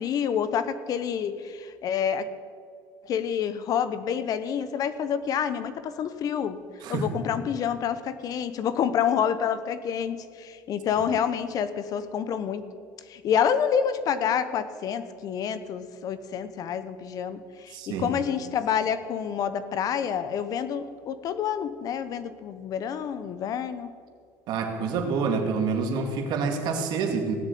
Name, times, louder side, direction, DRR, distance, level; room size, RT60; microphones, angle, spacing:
voice 1, 0.0-2.3 3.0-6.6 6.9-12.6 13.1-23.9, left 8 dB, 50° left, 13 dB, 0.9 m, -28 dB
voice 2, 17.7-18.1 24.5-27.3, right 5 dB, 60° right, 5 dB, 2.2 m, -27 dB
16.5 x 7.4 x 8.5 m, 2.1 s
cardioid pair, 135°, 8 cm